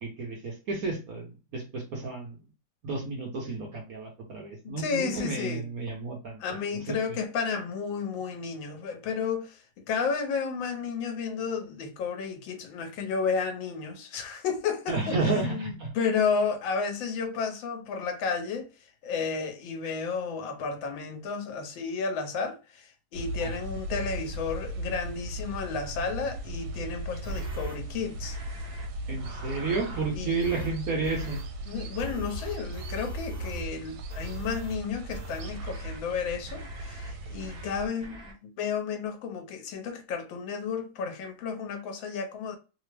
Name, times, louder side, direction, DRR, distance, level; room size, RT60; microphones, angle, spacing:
voice 1, 0.0-2.4 2.8-6.9 14.9-15.9 23.4-23.5 29.1-31.4, right 3 dB, 60° right, 1.1 m, -32 dB
voice 2, 4.6-5.6 6.4-18.7 19.0-28.4 30.2-30.4 31.7-42.6, left 5 dB, 80° left, 1.3 m, -32 dB
sound 1, 23.1-37.9, right 1 dB, 80° right, 1.4 m, -38 dB
sound 2, 27.2-27.7 28.2-28.9 29.2-30.1 30.4-30.7 31.0-31.4 32.0-33.7 34.1-34.7 35.1-36.0 36.5-37.1 37.4-37.7 38.0-38.3, right 2 dB, 30° right, 0.9 m, -41 dB
3.3 x 2.0 x 3.2 m
omnidirectional pair, 2.1 m